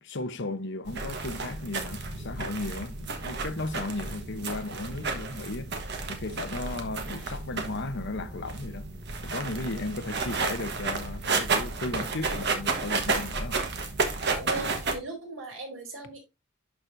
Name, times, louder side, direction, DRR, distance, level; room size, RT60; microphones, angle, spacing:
voice 1, 0.0-5.7 6.1-8.8 9.2-13.6, left 2 dB, 60° left, 0.9 m, -35 dB
sound 1, 0.9-15.0, right 4 dB, 60° right, 1.4 m, -32 dB
voice 2, 14.2-16.2, right 2 dB, 80° right, 4.1 m, -37 dB
11.5 x 4.6 x 2.7 m
head